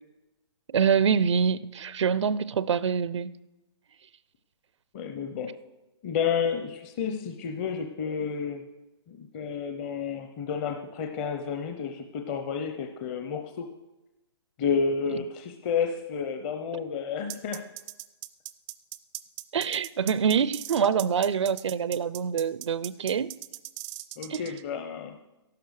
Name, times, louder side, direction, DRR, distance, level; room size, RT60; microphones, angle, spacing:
voice 1, 0.7-3.3 19.5-23.3 24.3-24.4, right 7 dB, 80° right, 0.5 m, -25 dB
voice 2, 4.9-5.5 6.0-8.6 9.1-13.7 14.6-17.7 24.2-25.1, left 6 dB, 25° left, 0.7 m, -31 dB
sound 1, 17.3-24.6, right 18 dB, 15° right, 0.4 m, -39 dB
14.0 x 11.5 x 6.4 m
hypercardioid pair, 155°, 15 cm